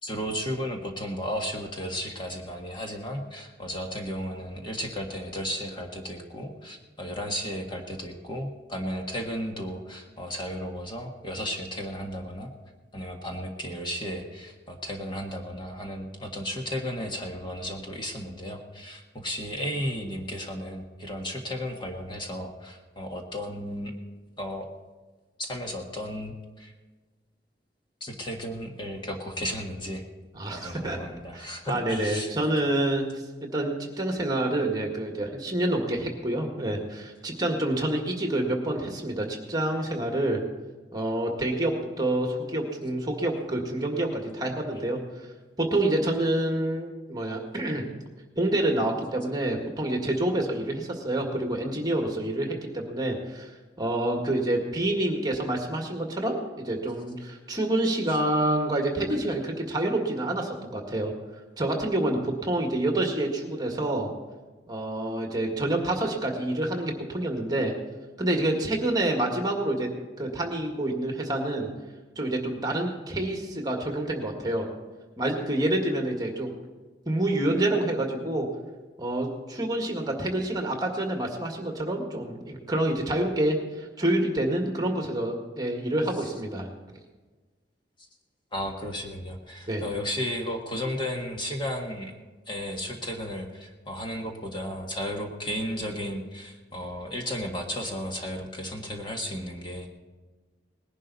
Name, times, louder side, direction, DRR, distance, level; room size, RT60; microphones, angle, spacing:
voice 1, 0.0-12.5 12.9-24.0 24.4-24.7 25.4-26.7 28.0-30.0 30.5-32.3 86.2-86.3 88.5-92.1 92.5-99.9, equal, 25° left, 1 dB, 1.6 m, -34 dB
voice 2, 30.3-31.0 31.3-33.0 33.4-40.4 40.9-45.0 45.6-47.8 48.4-53.5 53.8-61.1 61.6-64.1 64.7-67.7 68.2-69.9 70.2-71.7 72.2-74.7 75.2-76.5 77.1-78.5 79.0-86.7 89.7-89.8, right 1 dB, 20° right, 2 dB, 1.8 m, -27 dB
19.5 x 11.0 x 4.1 m, 1.3 s
head